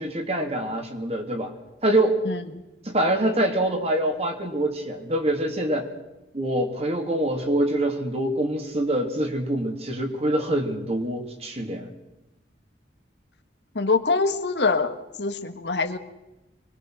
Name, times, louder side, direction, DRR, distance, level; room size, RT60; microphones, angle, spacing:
voice 1, 0.0-1.5 1.8-2.2 2.8-5.9 6.3-11.9, right 1 dB, 35° right, 4 dB, 2.8 m, -25 dB
voice 2, 13.8-16.0, left 3 dB, 70° left, 8 dB, 1.7 m, -24 dB
24.5 x 20.5 x 6.4 m, 0.98 s
head